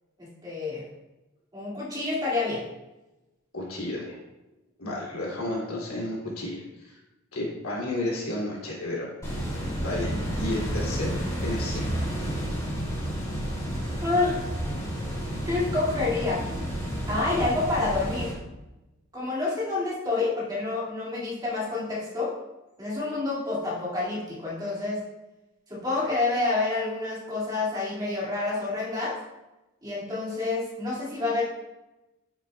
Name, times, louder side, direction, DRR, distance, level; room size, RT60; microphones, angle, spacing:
voice 1, 0.2-0.8 1.5-2.6 14.0-14.4 15.5-16.7 17.1-18.3 19.1-22.3 22.8-25.0 25.7-29.2 29.8-31.4, left 3 dB, 15° right, -5 dB, 2.0 m, -28 dB
voice 2, 3.5-4.2 4.8-7.0 7.3-9.1 9.8-11.9, left 1 dB, 75° left, -4 dB, 2.5 m, -32 dB
sound 1, 9.2-18.3, equal, 15° left, 2.2 m, -31 dB
9.8 x 6.9 x 2.2 m, 1.0 s
head